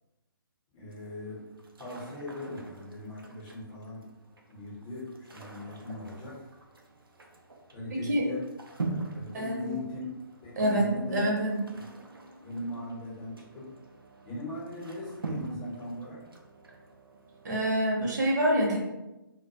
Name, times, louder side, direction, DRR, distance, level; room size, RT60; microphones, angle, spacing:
voice 1, 0.7-1.4 1.8-4.0 4.5-6.4 7.7-8.4 9.1-10.1 10.4-12.0 12.4-13.7 14.2-16.2, left 1 dB, 25° left, -6 dB, 0.8 m, -39 dB
sound 1, 0.9-17.7, right 3 dB, 75° right, 0.5 m, -44 dB
voice 2, 7.9-8.2 9.3-9.8 10.6-11.6 17.4-18.8, right 1 dB, 50° right, -2 dB, 0.8 m, -26 dB
2.1 x 2.1 x 2.8 m, 0.99 s
figure-of-eight pair, 140°, 12 cm